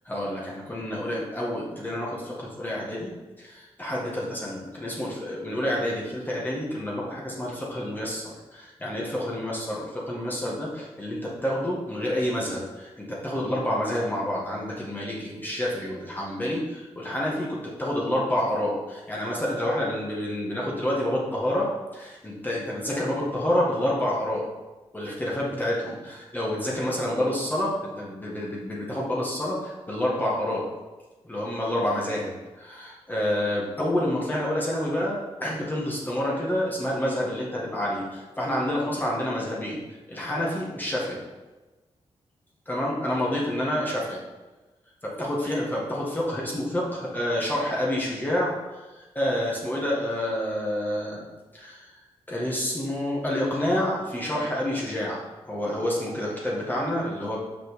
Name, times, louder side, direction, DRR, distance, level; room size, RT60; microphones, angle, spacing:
voice 1, 0.1-24.5 24.9-30.7 31.2-39.8 40.1-41.2 42.7-44.2 45.0-48.6 48.9-51.3 51.5-51.9 52.3-57.4, left 1 dB, 15° left, -5 dB, 1.9 m, -28 dB
6.0 x 5.9 x 5.2 m, 1.2 s
cardioid pair, 90°, 11 cm